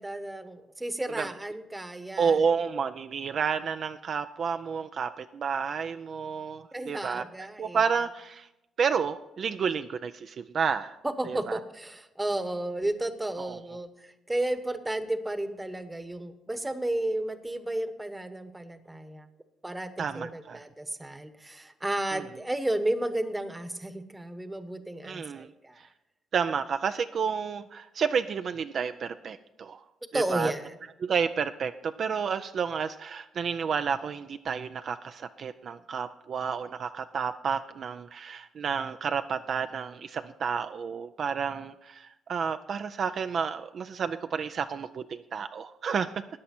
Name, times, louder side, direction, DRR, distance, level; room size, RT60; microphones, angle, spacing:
voice 1, 0.0-2.4 6.7-7.8 11.0-19.3 19.6-25.8 30.1-30.7, right 1 dB, 15° right, 11 dB, 1.0 m, -33 dB
voice 2, 2.2-7.2 7.6-8.5 8.8-11.0 11.3-11.6 13.4-13.6 20.0-20.6 22.1-22.2 25.0-25.5 26.3-29.8 30.1-30.5 31.0-46.1, right 6 dB, 55° right, 9 dB, 0.4 m, -30 dB
14.0 x 9.5 x 4.3 m, 0.93 s
cardioid pair, 90°, 0 cm